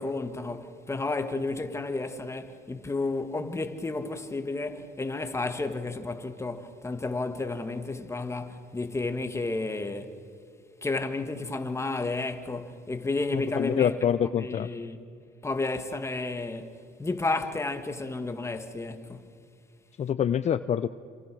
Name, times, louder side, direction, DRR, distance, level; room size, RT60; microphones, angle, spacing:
voice 1, 0.0-10.2 10.8-14.0 14.4-15.0 15.4-19.3, left 3 dB, 15° left, 2.0 m, -32 dB
voice 2, 13.3-14.7 20.0-20.9, left 9 dB, 40° left, 0.7 m, -26 dB
27.5 x 27.0 x 6.3 m
cardioid pair, 110°, 17 cm